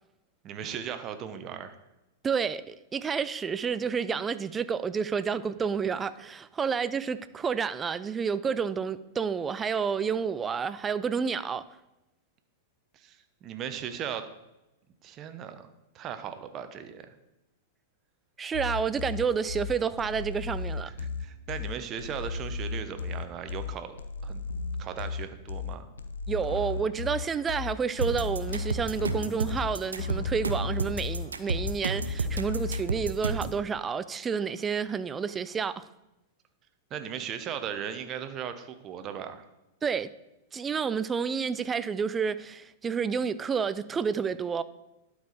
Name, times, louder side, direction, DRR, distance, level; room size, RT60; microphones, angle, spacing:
voice 1, 0.4-1.7 12.9-14.2 15.0-15.7 15.9-17.2 20.9-23.9 24.2-24.4 24.8-25.9 26.5-26.6 36.9-39.5, right 8 dB, 35° right, 0.9 m, -37 dB
voice 2, 2.2-11.6 18.4-20.9 26.3-35.9 39.8-40.1 40.5-44.6, right 6 dB, 20° right, 0.4 m, -30 dB
sound 1, 18.5-32.8, left 4 dB, 80° left, 0.5 m, -35 dB
sound 2, 28.0-33.6, right 4 dB, 85° right, 0.6 m, -31 dB
11.5 x 4.8 x 4.1 m
hypercardioid pair, 100°, 0 cm